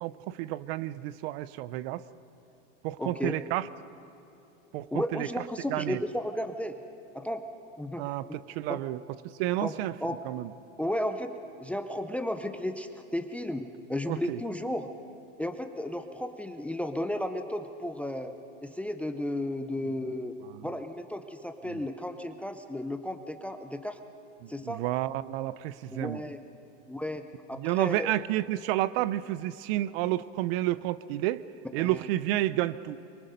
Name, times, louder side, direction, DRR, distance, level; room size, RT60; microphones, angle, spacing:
voice 1, 0.0-2.0 2.8-3.7 4.7-4.9 5.1-5.3 5.7-6.0 8.0-9.0 9.4-9.9 10.2-10.5 14.1-14.4 20.6-20.7 24.4-26.2 27.6-31.4 31.7-33.0, right 15 dB, 55° right, 17 dB, 0.6 m, -30 dB
voice 2, 3.0-3.4 4.9-6.8 7.1-7.4 7.8-8.4 8.7-8.8 9.6-9.8 10.0-10.2 10.8-11.3 11.6-14.9 15.4-18.3 18.6-20.4 20.6-24.0 24.5-24.8 25.9-26.4 26.9-28.2 31.8-32.1, left 1 dB, 5° left, 8 dB, 0.5 m, -34 dB
23.5 x 22.0 x 5.3 m, 3.0 s
supercardioid pair, 140°, 37 cm